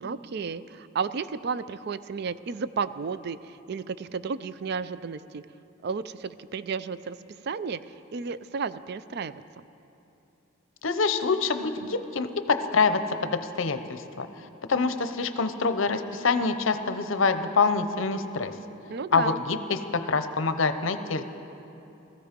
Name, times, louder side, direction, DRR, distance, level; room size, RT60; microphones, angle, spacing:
voice 1, 0.0-5.4 5.8-7.2 7.4-9.4 18.9-19.4, right 5 dB, 55° right, 14 dB, 0.4 m, -33 dB
voice 2, 10.8-14.3 14.7-18.5 19.1-21.2, left 4 dB, 80° left, 10 dB, 0.7 m, -26 dB
16.5 x 14.5 x 5.2 m, 2.9 s
head